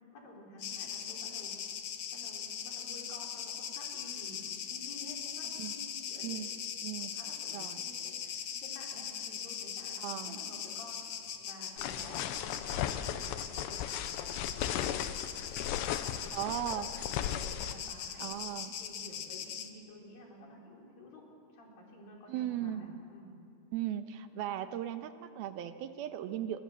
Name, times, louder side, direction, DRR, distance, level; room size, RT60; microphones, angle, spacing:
voice 1, 0.0-1.5 2.1-4.4 4.7-6.7 7.0-11.1 11.4-15.0 15.4-15.8 16.0-18.4 18.8-21.2 21.5-23.3, left 1 dB, 55° left, -1 dB, 6.1 m, -51 dB
sound 1, 0.6-19.7, left 8 dB, 70° left, 1.6 m, -41 dB
voice 2, 10.0-10.4 16.3-16.9 18.2-18.7 22.3-23.0 23.7-26.6, right 11 dB, 75° right, 9 dB, 2.5 m, -37 dB
sound 2, 11.8-17.7, left 11 dB, 90° left, 3.1 m, -36 dB
28.5 x 24.0 x 7.4 m, 2.4 s
omnidirectional pair, 4.9 m